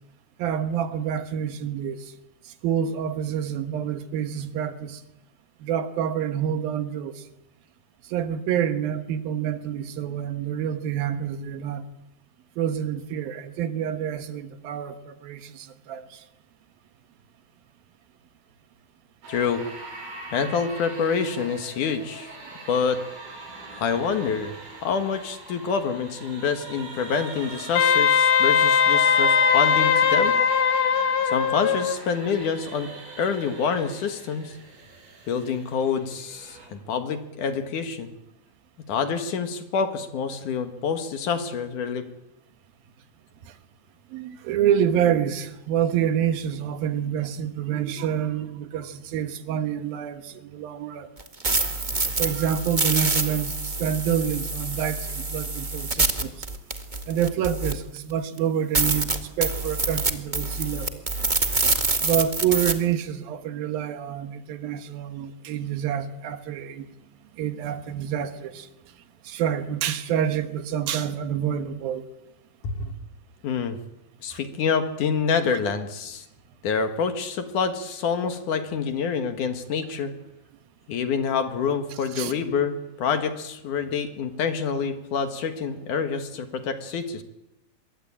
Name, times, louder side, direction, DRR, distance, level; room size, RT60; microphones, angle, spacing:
voice 1, 0.4-2.1 2.6-5.0 5.6-7.1 8.1-11.9 12.6-16.2 44.1-51.1 52.2-56.3 57.1-61.0 62.0-66.9 67.4-68.7 69.2-72.1 82.2-82.3, right 9 dB, 80° right, 3.1 m, -27 dB
sound 1, 19.2-36.7, right 3 dB, 60° right, 8.0 m, -40 dB
voice 2, 19.3-19.6 20.3-22.3 22.7-23.0 23.8-24.5 24.8-30.3 31.2-32.9 33.2-34.6 35.3-38.1 38.9-42.1 72.6-72.9 73.4-73.8 74.2-76.2 76.6-80.1 80.9-87.2, left 6 dB, 60° left, 3.0 m, -27 dB
Wind instrument woodwind instrument, 27.8-32.0, left 7 dB, 85° left, 3.4 m, -20 dB
sound 2, 51.2-58.0 58.4-58.5 58.7-62.7, right 3 dB, 40° right, 0.6 m, -26 dB
25.0 x 22.5 x 8.7 m
omnidirectional pair, 4.2 m